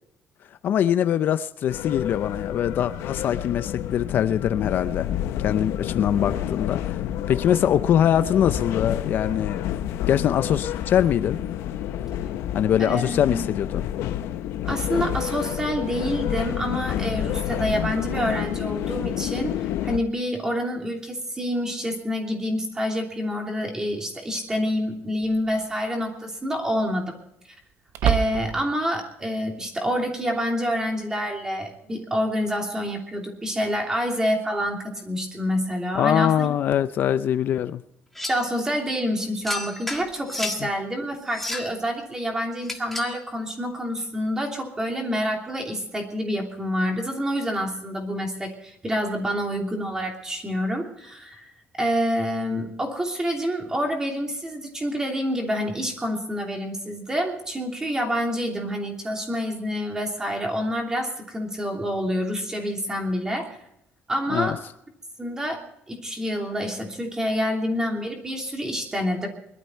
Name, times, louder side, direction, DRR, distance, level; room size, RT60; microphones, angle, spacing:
voice 1, 0.6-5.1 5.4-7.0 7.3-9.6 10.1-11.4 12.5-13.9 35.9-37.8 40.6-40.7 64.3-64.5, left 10 dB, 50° left, 0.6 m, -23 dB
sound 1, 1.7-20.0, left 11 dB, 90° left, 0.9 m, -29 dB
voice 2, 12.8-13.5 14.6-19.6 19.8-27.1 28.0-36.5 38.3-51.5 51.8-63.5 64.1-64.6 65.2-65.6 65.9-69.3, equal, 15° right, 3.0 m, -27 dB
sound 2, 23.3-23.4 25.2-25.6 26.0-26.1 27.9-28.8, right 9 dB, 80° right, 0.8 m, -26 dB
sound 3, 38.2-38.5 39.4-40.7 41.2-41.8 42.6-43.2, left 2 dB, 5° left, 1.7 m, -32 dB
21.0 x 12.5 x 4.5 m
cardioid pair, 170°, 4 cm